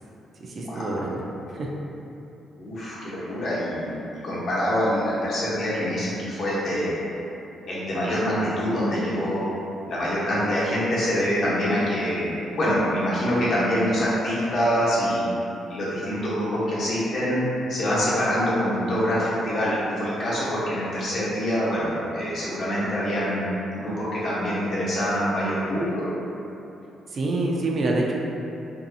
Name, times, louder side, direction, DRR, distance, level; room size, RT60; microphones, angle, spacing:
voice 1, 0.4-1.2 1.5-1.7 27.1-28.1, right 2 dB, 50° right, -1 dB, 0.4 m, -26 dB
voice 2, 2.6-6.9 7.7-9.4 9.8-15.3 15.7-17.4 17.7-23.4 23.7-26.0, equal, 60° left, -9 dB, 0.9 m, -25 dB
2.6 x 2.3 x 2.6 m, 2.9 s
cardioid pair, 90°, 0 cm